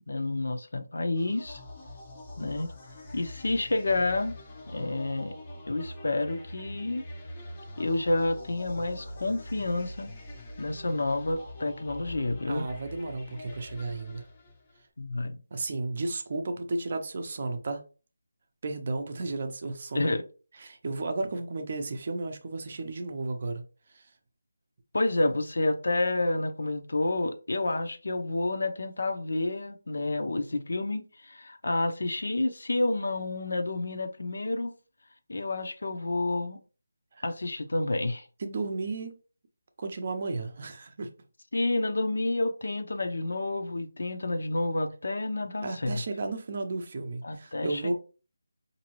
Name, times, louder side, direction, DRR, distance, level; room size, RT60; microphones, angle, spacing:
voice 1, 0.1-1.6 2.4-2.7 3.1-4.3 4.7-5.3 5.7-7.0 7.8-10.1 10.6-12.7 15.0-15.4 19.9-20.2 24.9-34.7 35.3-36.6 37.2-38.3 41.5-46.0 47.2-47.9, left 2 dB, 65° left, 0.6 m, -29 dB
sound 1, 1.2-14.8, left 1 dB, 15° left, 0.6 m, -44 dB
voice 2, 12.5-14.2 15.5-17.8 18.6-20.2 20.6-23.6 23.9-24.1 37.2-37.3 38.4-39.2 39.8-41.1 45.6-47.9, right 3 dB, 30° right, 0.6 m, -33 dB
5.0 x 2.7 x 3.0 m
figure-of-eight pair, 175°, 0 cm